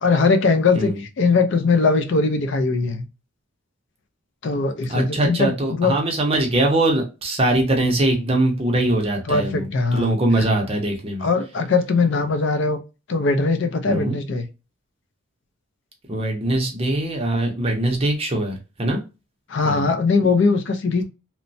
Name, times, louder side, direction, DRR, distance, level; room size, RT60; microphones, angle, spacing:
voice 1, 0.0-3.1 4.4-6.0 9.3-10.2 11.2-12.8 13.1-14.5 19.5-21.0, left 4 dB, 55° left, 0.4 m, -20 dB
voice 2, 4.9-11.3 13.9-14.2 16.1-19.0 19.6-19.9, right 1 dB, 25° right, 0.6 m, -22 dB
3.0 x 2.1 x 2.5 m
head